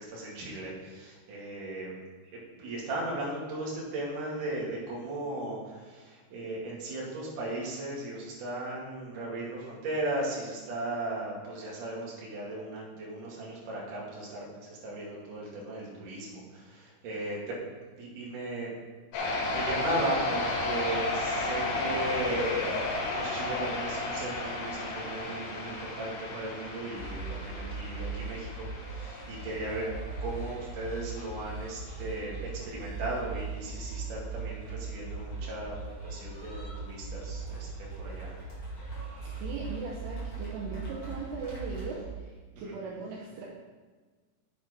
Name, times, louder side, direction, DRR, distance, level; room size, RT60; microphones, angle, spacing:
voice 1, 0.0-1.9 2.3-17.6 17.9-18.7 19.5-22.7 23.1-29.9 30.2-35.8 36.0-37.7 38.0-38.3 42.5-42.8, right 2 dB, 50° right, -4 dB, 3.1 m, -37 dB
sound 1, 19.1-30.6, left 2 dB, 85° left, 4.4 m, -33 dB
sound 2, 26.9-42.0, right 4 dB, 25° left, 2.2 m, -39 dB
voice 2, 39.2-43.5, right 4 dB, 75° right, -4 dB, 2.6 m, -39 dB
8.1 x 7.4 x 5.1 m, 1.4 s
omnidirectional pair, 5.7 m